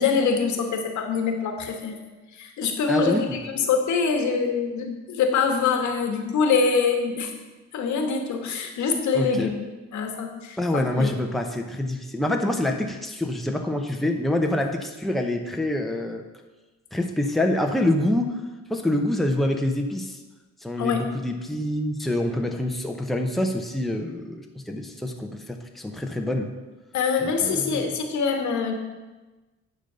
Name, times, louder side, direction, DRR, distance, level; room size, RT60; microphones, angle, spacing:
voice 1, 0.0-2.0 2.3-7.4 7.7-9.6 9.9-11.1 20.8-21.1 26.9-28.7, left 5 dB, 80° left, 4 dB, 1.4 m, -24 dB
voice 2, 2.9-3.4 9.1-9.5 10.6-16.2 16.9-18.3 18.7-20.2 20.6-26.5 27.2-27.9, left 1 dB, ahead, 3 dB, 0.8 m, -26 dB
10.0 x 4.0 x 6.7 m, 1.2 s
cardioid pair, 105°, 29 cm